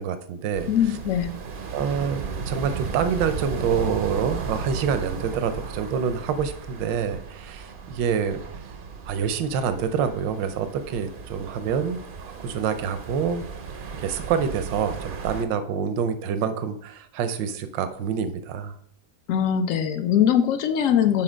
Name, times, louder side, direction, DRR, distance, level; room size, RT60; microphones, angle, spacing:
voice 1, 0.0-1.0 1.7-2.2 2.5-8.4 9.1-13.4 14.0-18.7, right 7 dB, 85° right, 10 dB, 1.4 m, -27 dB
sound 1, 0.5-15.4, right 5 dB, 70° right, 0.5 m, -35 dB
voice 2, 0.7-1.3 19.3-21.2, left 9 dB, 70° left, 10 dB, 0.7 m, -21 dB
7.6 x 4.2 x 5.0 m, 0.71 s
omnidirectional pair, 1.9 m